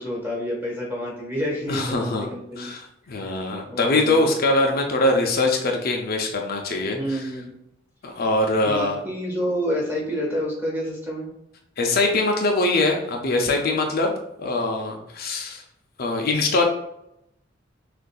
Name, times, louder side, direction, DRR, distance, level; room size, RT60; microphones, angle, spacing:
voice 1, 0.0-2.7 3.2-3.4 3.7-4.3 6.9-7.4 8.6-11.3, equal, 10° right, -4 dB, 1.4 m, -28 dB
voice 2, 1.7-2.3 2.6-7.2 8.0-9.0 11.8-14.1 14.4-15.6 16.0-16.6, left 2 dB, 50° left, 2 dB, 0.5 m, -22 dB
6.3 x 2.5 x 2.3 m, 0.81 s
head